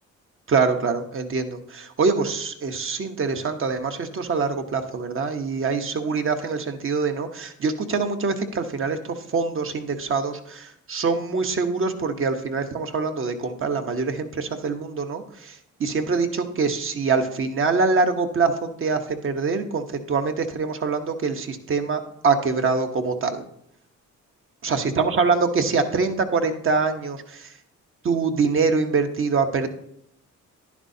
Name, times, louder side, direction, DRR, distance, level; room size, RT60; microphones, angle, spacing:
voice 1, 0.5-23.4 24.6-27.5 28.0-29.7, right 4 dB, 45° right, 6 dB, 1.1 m, -24 dB
10.5 x 10.5 x 2.8 m, 0.73 s
cardioid pair, 90°, 30 cm